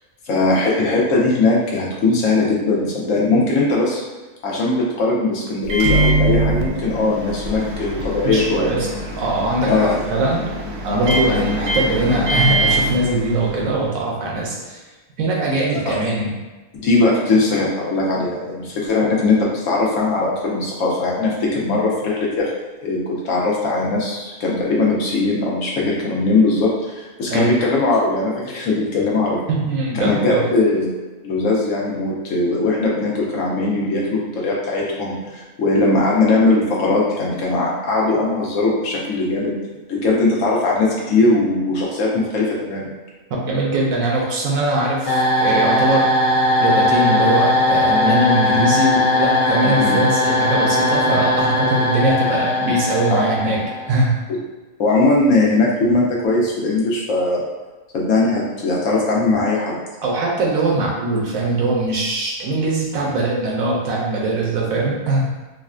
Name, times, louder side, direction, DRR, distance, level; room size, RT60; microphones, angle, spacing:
voice 1, 0.2-4.0 4.4-8.7 9.7-10.0 15.7-15.9 16.7-22.5 22.8-29.4 30.0-30.9 31.2-39.5 39.9-42.9 49.8-50.0 54.8-57.4 57.9-59.8, left 2 dB, 70° left, -3 dB, 1.1 m, -19 dB
Microwave oven, 5.6-13.8, right 1 dB, 65° right, 0.7 m, -23 dB
voice 2, 8.2-8.9 9.2-10.5 10.8-14.8 15.2-16.3 27.3-27.5 29.5-30.5 43.3-46.1 46.6-53.6 53.9-54.2 60.0-65.3, right 2 dB, 85° right, -2 dB, 1.1 m, -21 dB
sound 1, 45.1-54.0, left 1 dB, 40° left, 0.8 m, -18 dB
3.9 x 2.2 x 2.4 m, 1.2 s
omnidirectional pair, 1.4 m